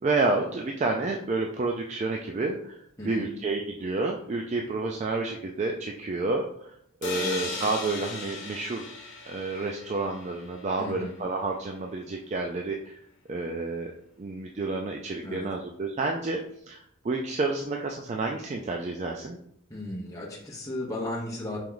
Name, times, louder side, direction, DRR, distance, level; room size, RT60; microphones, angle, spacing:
voice 1, 0.0-2.8 3.0-6.7 7.0-8.8 9.2-13.0 13.3-13.9 14.2-16.4 16.7-19.4, right 3 dB, 35° right, 1 dB, 0.3 m, -30 dB
voice 2, 3.0-3.3 7.2-7.5 10.8-11.1 15.2-15.5 19.7-21.6, left 1 dB, 15° left, -4 dB, 1.0 m, -35 dB
sound 1, 7.0-10.8, left 3 dB, 60° left, 0.9 m, -37 dB
4.5 x 3.0 x 3.8 m, 0.69 s
head